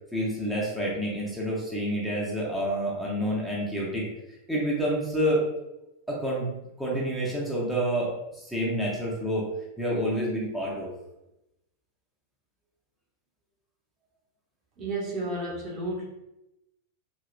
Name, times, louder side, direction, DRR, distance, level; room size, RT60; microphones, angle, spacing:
voice 1, 0.1-4.1 4.5-5.4 6.1-6.5 6.8-9.5 9.8-10.9, equal, ahead, -6 dB, 0.9 m, -28 dB
voice 2, 14.8-16.0, right 2 dB, 35° right, -3 dB, 1.0 m, -32 dB
3.0 x 3.0 x 2.5 m, 0.89 s
figure-of-eight pair, 90°, 0 cm